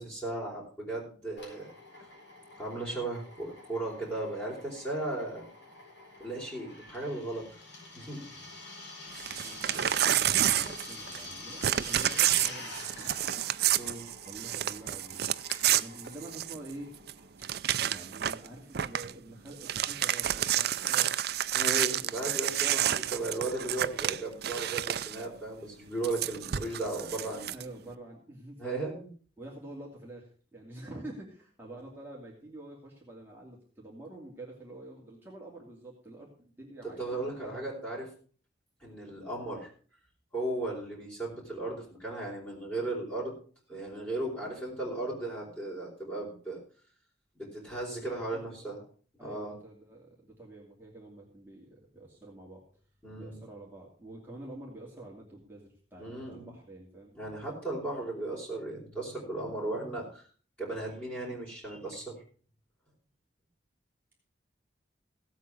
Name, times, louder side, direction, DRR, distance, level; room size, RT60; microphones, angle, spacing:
voice 1, 0.0-1.7 2.6-5.4 6.2-7.4 7.9-8.2 13.8-14.0 21.5-27.5 28.6-29.1 37.0-38.1 38.8-39.7 40.3-43.3 43.7-46.6 47.3-48.8 49.2-49.5 53.0-53.4 56.0-56.5 57.1-60.2 60.6-62.2, right 2 dB, 10° left, -6 dB, 4.5 m, -36 dB
Drill, 1.4-17.7, left 2 dB, 75° left, 6.5 m, -46 dB
Crumpling crinkling / Tearing, 9.2-11.3 11.6-16.7 17.1-17.2 17.4-18.5 18.7-19.1 19.5-25.2 26.0-27.6, right 11 dB, 55° right, 0.5 m, -29 dB
voice 2, 9.4-13.2 14.3-15.3 15.7-16.9 17.8-21.1 22.4-23.2 27.5-28.9 29.4-37.6 48.0-48.1 48.5-48.8 49.2-52.6 53.1-57.1, right 1 dB, 10° right, -4 dB, 2.7 m, -47 dB
16.5 x 8.3 x 4.8 m, 0.42 s
head